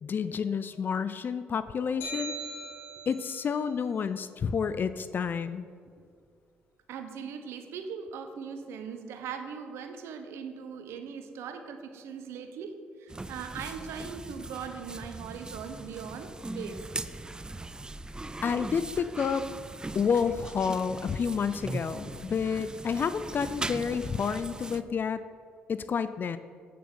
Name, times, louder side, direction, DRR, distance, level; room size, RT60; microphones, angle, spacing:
voice 1, 0.0-2.4 3.1-5.7 18.4-19.4 19.9-25.2 25.7-26.4, left 6 dB, 50° left, 13 dB, 0.4 m, -29 dB
sound 1, 2.0-3.4, right 2 dB, 85° left, 2.2 m, -39 dB
voice 2, 6.9-12.7 13.0-16.3 16.5-16.8, right 6 dB, 75° right, 7 dB, 1.0 m, -40 dB
sound 2, 13.1-24.8, right 2 dB, 20° right, 0.5 m, -40 dB
8.6 x 7.0 x 6.3 m, 2.2 s
supercardioid pair, 60°, 4 cm